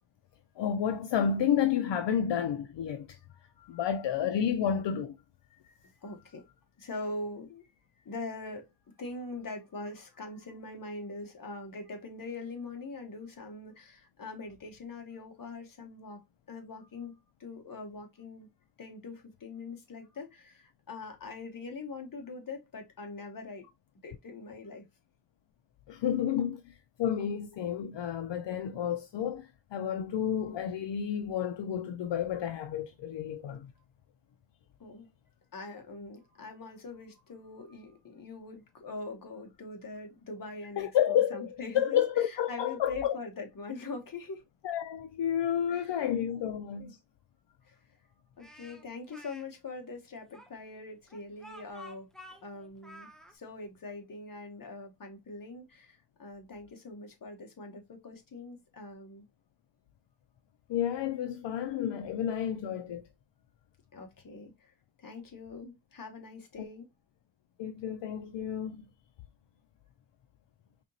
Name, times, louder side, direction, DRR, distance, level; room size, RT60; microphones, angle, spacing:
voice 1, 0.6-3.2 3.7-5.2 25.9-26.7 27.0-33.7 40.8-43.2 44.6-47.0 60.7-63.0 66.6-66.7 67.6-68.9, left 9 dB, 75° left, 0.5 m, -30 dB
voice 2, 3.6-3.9 5.5-7.7 8.0-8.7 9.0-16.2 16.5-18.5 18.8-23.7 23.9-24.9 34.8-35.1 35.5-44.4 45.7-46.1 46.3-46.5 46.8-46.9 47.6-47.8 48.4-52.1 52.4-59.2 63.9-66.9, left 3 dB, 50° left, 1.1 m, -43 dB
Speech, 48.4-49.4 50.3-53.3, left 1 dB, ahead, 0.4 m, -51 dB
4.4 x 2.9 x 2.6 m
wide cardioid pair, 170°, 44 cm